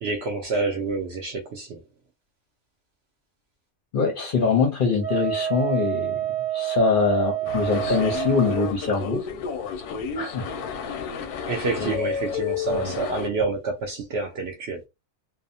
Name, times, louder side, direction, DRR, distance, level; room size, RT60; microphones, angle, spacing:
voice 1, 0.0-1.8 11.5-14.8, right 3 dB, 75° right, 0.5 m, -28 dB
voice 2, 3.9-6.2 6.5-9.2 10.2-10.5 11.8-11.9 12.7-12.9, left 4 dB, 50° left, 0.6 m, -23 dB
Wind instrument woodwind instrument, 5.0-8.7, right 11 dB, 35° right, 0.9 m, -28 dB
sound 1, 7.5-13.3, left 6 dB, 90° left, 1.1 m, -31 dB
2.6 x 2.0 x 2.6 m
omnidirectional pair, 1.6 m